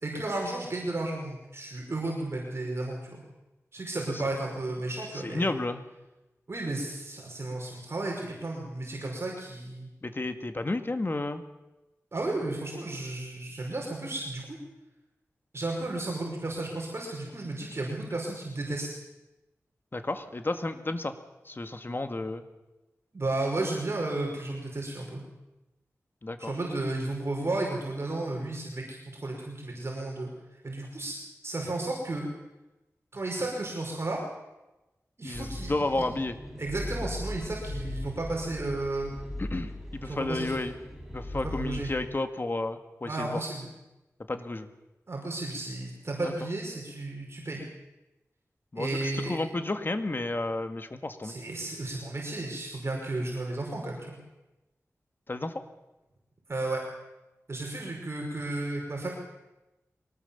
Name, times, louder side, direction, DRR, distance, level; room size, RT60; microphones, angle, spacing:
voice 1, 0.0-3.2 3.7-5.5 6.5-9.9 12.1-14.6 15.5-19.0 23.1-25.2 26.4-30.3 30.6-31.2 31.4-32.3 33.1-34.2 35.2-36.0 36.6-39.1 40.0-40.6 41.3-41.9 43.0-43.7 45.1-47.6 48.8-49.4 51.2-54.2 56.5-56.8 57.5-59.1, right 2 dB, 50° right, -1 dB, 5.2 m, -33 dB
voice 2, 5.1-5.9 10.0-11.4 19.9-21.1 21.5-22.4 26.2-26.5 35.2-36.4 39.4-40.7 41.1-43.4 44.3-44.7 46.2-46.3 48.7-51.3 55.3-55.5, left 2 dB, 40° left, 8 dB, 1.9 m, -32 dB
sound 1, 35.3-41.9, left 1 dB, 5° right, 6.4 m, -39 dB
23.5 x 19.0 x 7.2 m, 1.0 s
wide cardioid pair, 65°, 6 cm